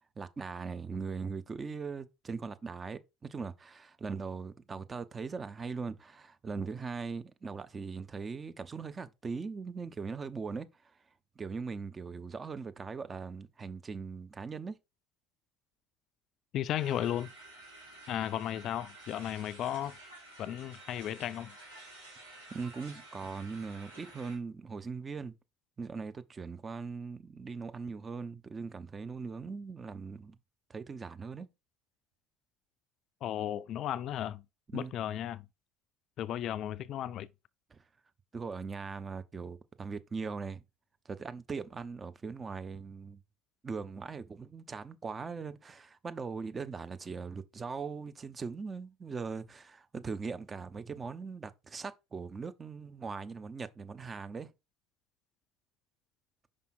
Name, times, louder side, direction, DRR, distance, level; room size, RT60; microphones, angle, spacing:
voice 1, 0.2-11.0 11.4-14.8 22.5-25.3 25.8-30.4 30.7-31.5 34.7-34.9 37.7-37.8 38.3-40.6 41.0-43.2 43.6-54.5, right 5 dB, 25° right, 0.8 m, -40 dB
voice 2, 16.5-17.3 18.1-19.9 20.4-21.5 33.2-34.4 34.7-35.4 36.2-37.3, left 11 dB, 50° left, 0.3 m, -35 dB
sound 1, 16.7-24.4, right 2 dB, 85° right, 3.3 m, -52 dB
5.5 x 4.9 x 4.2 m
figure-of-eight pair, 65°, 0 cm